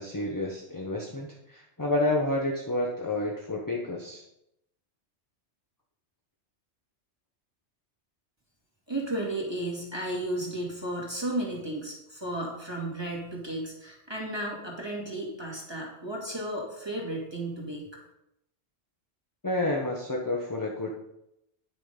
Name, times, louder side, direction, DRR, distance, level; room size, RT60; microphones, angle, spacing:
voice 1, 0.0-4.2 19.4-20.9, left 2 dB, 20° left, -1 dB, 1.1 m, -30 dB
voice 2, 8.9-17.9, right 1 dB, 20° right, -3 dB, 2.3 m, -34 dB
10.5 x 6.8 x 5.4 m, 0.83 s
omnidirectional pair, 1.2 m